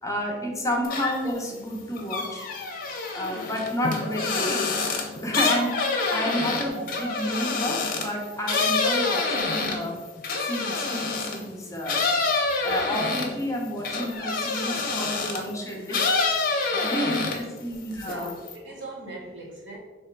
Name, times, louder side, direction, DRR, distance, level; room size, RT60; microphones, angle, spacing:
voice 1, 0.0-2.5 3.1-4.8 5.2-10.0 10.4-12.1 12.6-16.0 16.7-18.3, equal, 15° left, 0 dB, 0.7 m, -30 dB
sound 1, 0.8-1.4 1.7-11.4 11.9-15.5 15.9-17.6 17.9-18.5, left 3 dB, 50° left, 0.6 m, -27 dB
voice 2, 17.7-18.3 18.6-19.8, right 2 dB, 85° right, -3 dB, 1.3 m, -40 dB
3.6 x 2.9 x 4.5 m, 1.3 s
head